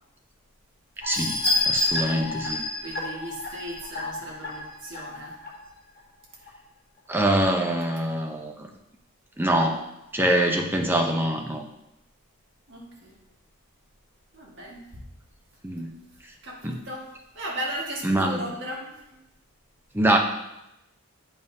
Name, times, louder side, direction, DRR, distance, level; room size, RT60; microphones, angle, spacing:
sound 1, 1.0-5.5 6.0-6.1 6.5-6.6, left 2 dB, 45° left, 1.3 m, -29 dB
voice 1, 1.0-2.6 7.1-8.7 9.4-9.8 10.1-11.6 15.6-15.9 16.6-16.8 18.0-18.4 19.9-20.2, right 1 dB, 10° right, 2 dB, 0.6 m, -24 dB
voice 2, 2.8-5.4 12.7-13.2 14.3-15.1 16.4-19.2, equal, 55° right, -3 dB, 1.6 m, -36 dB
9.0 x 5.4 x 2.7 m, 0.90 s
head